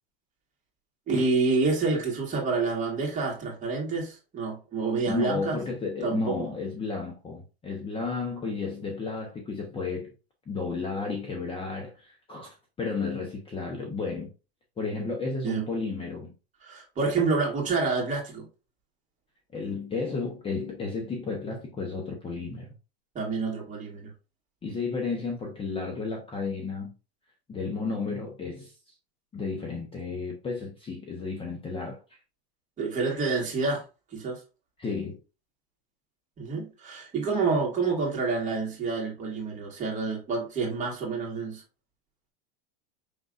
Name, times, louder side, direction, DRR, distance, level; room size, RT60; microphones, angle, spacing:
voice 1, 1.1-5.6 6.0-6.4 15.4-15.7 16.6-18.5 23.1-24.1 32.8-33.8 34.1-34.4 36.4-41.6, right 4 dB, 25° right, 2.2 m, -28 dB
voice 2, 5.1-10.1 10.5-12.5 12.8-14.3 14.8-16.3 19.5-22.7 24.6-26.9 27.5-28.9 29.3-32.0 34.8-35.2, left 4 dB, 15° left, 0.9 m, -32 dB
5.3 x 3.8 x 2.5 m
supercardioid pair, 135°, 32 cm